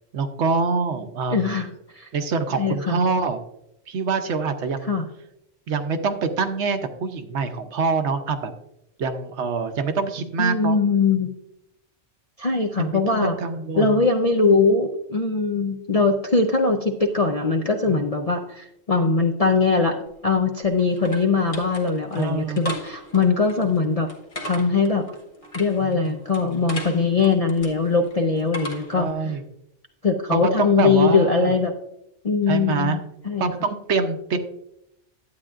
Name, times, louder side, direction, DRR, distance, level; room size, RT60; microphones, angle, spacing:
voice 1, 0.1-1.6 2.1-3.4 3.9-4.9 5.7-8.5 9.0-10.8 12.8-14.0 17.9-18.1 22.2-22.6 25.8-26.2 28.9-29.4 30.3-31.5 32.5-33.0 33.4-34.4, right 4 dB, 70° right, 8 dB, 1.0 m, -25 dB
voice 2, 1.3-1.7 1.9-2.1 2.6-3.0 4.8-5.1 10.4-11.3 12.4-13.4 13.8-20.0 20.2-24.1 24.4-25.1 25.5-29.1 30.0-31.7 32.2-33.5, left 4 dB, 45° left, 3 dB, 0.5 m, -21 dB
sound 1, 20.1-29.1, equal, 30° left, 1.1 m, -38 dB
11.5 x 8.5 x 2.4 m, 0.82 s
omnidirectional pair, 1.3 m